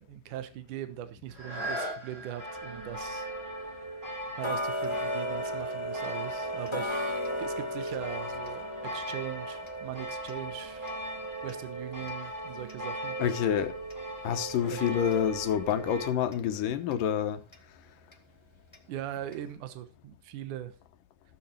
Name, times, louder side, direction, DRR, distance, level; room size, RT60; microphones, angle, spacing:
voice 1, 0.0-3.3 4.4-10.9 11.4-13.2 14.7-15.0 18.9-20.7, right 11 dB, 70° right, 2.6 m, -40 dB
sound 1, 1.3-6.9 7.5-7.6, right 1 dB, 55° right, 9.1 m, -42 dB
sound 2, 2.4-16.1, right 1 dB, 5° right, 2.1 m, -38 dB
Tick-tock, 4.4-15.3 15.7-15.8 16.3-16.4 16.9-17.0 17.5-17.6 18.1-18.2 18.7-18.8 19.3-19.4, equal, 30° left, 0.5 m, -37 dB
voice 2, 13.2-13.8 14.2-17.4, left 9 dB, 80° left, 2.7 m, -28 dB
16.0 x 7.5 x 4.4 m
omnidirectional pair, 3.9 m